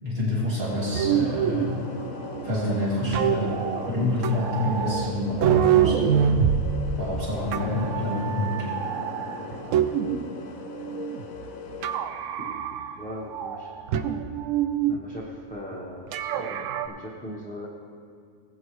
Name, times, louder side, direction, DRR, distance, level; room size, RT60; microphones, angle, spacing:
voice 1, 0.0-1.9 2.4-3.6 3.8-6.1 7.0-8.7 12.4-12.5, left 1 dB, 45° right, -7 dB, 2.9 m, -27 dB
sound 1, 0.6-12.0, left 4 dB, 80° left, 1.3 m, -39 dB
sound 2, 0.9-10.3 10.7-11.5 11.8-13.0 13.3-15.0 16.1-16.9, right 8 dB, 70° right, 0.9 m, -26 dB
voice 2, 13.0-13.7 14.8-17.7, equal, 5° left, -4 dB, 0.8 m, -39 dB
17.5 x 8.4 x 3.2 m, 2.2 s
omnidirectional pair, 1.4 m